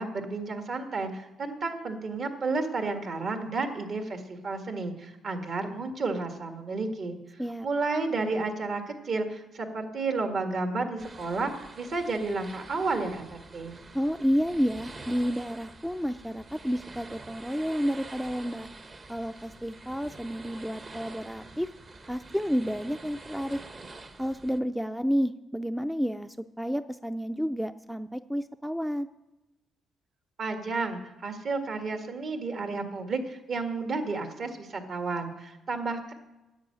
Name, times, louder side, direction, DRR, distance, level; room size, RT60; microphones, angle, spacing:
voice 1, 0.0-13.8 30.4-36.1, right 3 dB, 55° right, 5 dB, 1.9 m, -32 dB
sound 1, 11.0-24.6, right 3 dB, 35° right, 1.1 m, -47 dB
voice 2, 13.9-18.7 19.1-21.7 22.1-23.6 24.2-29.1, equal, 5° right, 11 dB, 0.4 m, -30 dB
10.5 x 7.6 x 8.6 m, 1.0 s
cardioid pair, 90°, 0 cm